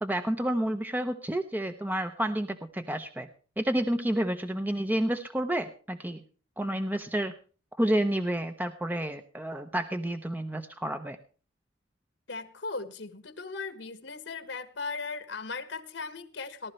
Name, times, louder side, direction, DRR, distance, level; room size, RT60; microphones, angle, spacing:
voice 1, 0.0-2.5 2.7-3.3 3.6-6.2 6.6-7.3 7.8-11.2, right 1 dB, 10° right, 8 dB, 0.7 m, -30 dB
voice 2, 12.3-16.7, left 4 dB, 80° left, 10 dB, 1.5 m, -38 dB
18.5 x 12.0 x 3.2 m, 0.38 s
head